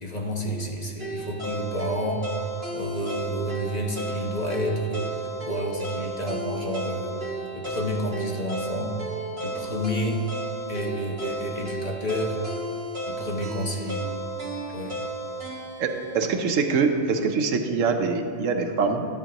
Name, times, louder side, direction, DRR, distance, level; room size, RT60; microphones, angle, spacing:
voice 1, 0.0-2.3 2.7-9.0 9.4-10.2 10.7-12.4 13.0-14.1 14.7-15.0, equal, 35° left, -1 dB, 1.1 m, -30 dB
sound 1, 1.0-17.1, right 1 dB, 50° right, 2.1 m, -34 dB
voice 2, 15.8-19.1, right 5 dB, 85° right, 5 dB, 1.2 m, -24 dB
13.0 x 10.5 x 3.0 m, 2.5 s
omnidirectional pair, 1.3 m